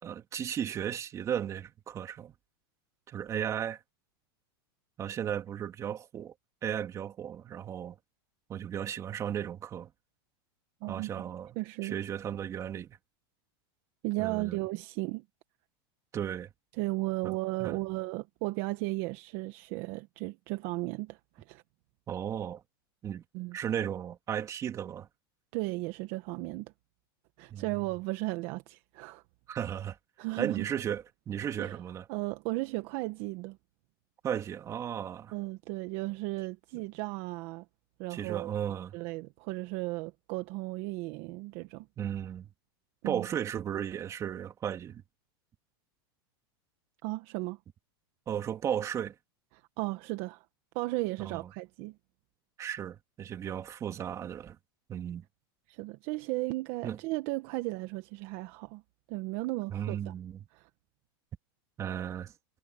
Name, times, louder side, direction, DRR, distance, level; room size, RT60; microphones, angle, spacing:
voice 1, 0.0-2.3 3.1-3.8 5.0-6.3 6.6-8.0 8.5-9.9 10.9-13.0 14.2-14.6 16.1-16.5 17.2-17.8 22.1-22.6 23.0-23.2 23.5-25.1 27.5-27.8 29.5-30.0 30.4-32.1 34.2-35.3 38.1-39.0 42.0-42.5 43.0-45.0 48.3-49.1 51.2-51.5 52.6-54.6 54.9-55.2 56.8-57.0 59.7-60.4 61.8-62.3, right 9 dB, 25° right, 2.9 m, -35 dB
voice 2, 10.8-11.2 11.5-11.9 14.0-15.2 16.8-21.6 23.3-23.6 25.5-26.7 27.4-29.2 30.2-30.6 31.6-31.8 32.1-33.6 35.3-37.6 38.0-38.5 38.9-41.9 43.0-43.2 47.0-47.6 49.5-50.4 50.7-51.9 55.7-58.8 59.1-60.1 60.5-60.7, right 21 dB, 45° right, 1.3 m, -35 dB
supercardioid pair, 150°, 13 cm